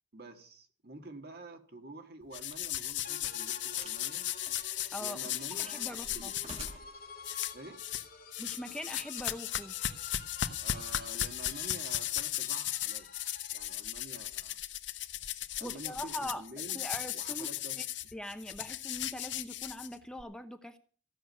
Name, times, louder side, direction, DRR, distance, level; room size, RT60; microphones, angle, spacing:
voice 1, 0.1-4.3 5.0-6.3 7.5-7.8 10.6-13.1 13.5-14.6 15.6-16.8 17.1-17.9, right 2 dB, 55° right, 6 dB, 1.9 m, -48 dB
sound 1, 2.3-6.7 7.2-8.1 8.3-20.2, left 12 dB, 75° left, 1.0 m, -36 dB
sound 2, 2.5-2.7 3.7-4.1 4.4-5.2 5.6-7.0 7.9-8.0, right 2 dB, 35° right, 1.7 m, -49 dB
sound 3, 3.0-13.8, left 5 dB, 50° left, 2.1 m, -51 dB
voice 2, 4.9-5.3 5.6-6.3 8.4-9.8 15.6-16.4 16.7-17.5 17.8-17.9 18.1-20.8, left 1 dB, 5° left, 8 dB, 0.8 m, -42 dB
15.5 x 6.4 x 9.7 m, 0.42 s
head